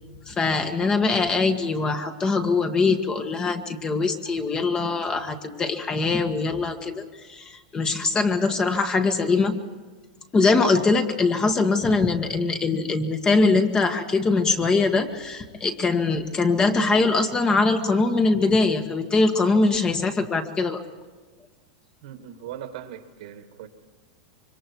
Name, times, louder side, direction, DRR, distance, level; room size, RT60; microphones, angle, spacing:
voice 1, 0.3-7.0 7.3-9.5 10.3-20.8, left 3 dB, 20° left, 1.7 m, -22 dB
voice 2, 22.0-23.7, right 10 dB, 65° right, 2.1 m, -39 dB
26.0 x 24.0 x 4.7 m
supercardioid pair, 145°, 4 cm